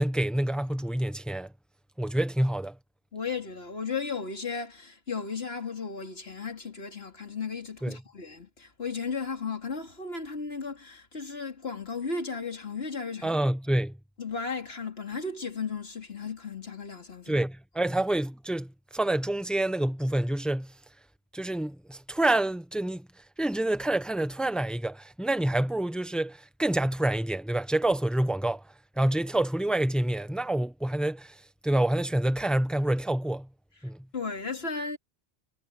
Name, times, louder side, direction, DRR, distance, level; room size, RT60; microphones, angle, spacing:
voice 1, 0.0-1.5 2.0-2.8 7.8-8.0 13.2-14.0 17.3-20.7 21.3-33.5 33.8-34.1, right 1 dB, ahead, 0.9 m, -27 dB
voice 2, 3.1-13.4 14.2-17.4 34.1-35.0, left 5 dB, 65° left, 3.1 m, -35 dB
omnidirectional pair, 1.1 m